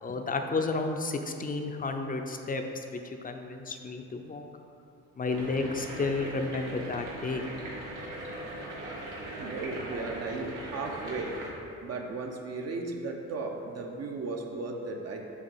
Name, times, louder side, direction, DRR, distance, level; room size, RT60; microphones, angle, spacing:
voice 1, 0.0-4.4 5.2-7.5, left 3 dB, 30° left, 5 dB, 0.6 m, -32 dB
sound 1, 5.3-11.5, right 1 dB, 90° right, 1.4 m, -40 dB
voice 2, 9.4-11.4 11.8-15.2, right 3 dB, 55° right, 2 dB, 0.9 m, -35 dB
8.0 x 2.9 x 5.6 m, 2.6 s
cardioid pair, 90°, 30 cm